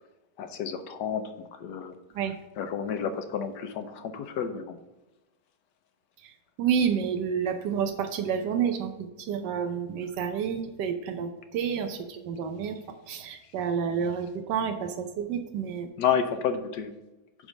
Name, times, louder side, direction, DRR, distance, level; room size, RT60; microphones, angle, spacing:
voice 1, 0.4-1.9 2.6-4.8 16.0-16.9, left 7 dB, 80° left, 8 dB, 1.3 m, -30 dB
voice 2, 6.6-12.7 13.1-15.9, right 7 dB, 80° right, 5 dB, 1.4 m, -29 dB
10.5 x 3.7 x 5.2 m, 1.0 s
omnidirectional pair, 1.8 m